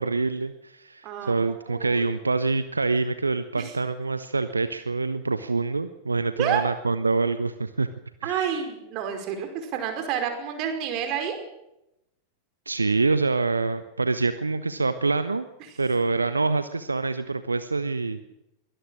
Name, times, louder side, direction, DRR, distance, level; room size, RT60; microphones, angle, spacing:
voice 1, 0.0-7.9 8.2-8.6 12.7-15.5 15.8-18.3, right 3 dB, 80° right, 12 dB, 0.9 m, -26 dB
voice 2, 1.0-2.0 3.6-3.7 6.4-6.6 8.2-11.4, right 8 dB, 40° right, 6 dB, 5.1 m, -29 dB
23.0 x 18.0 x 6.5 m, 0.86 s
figure-of-eight pair, 90°, 0 cm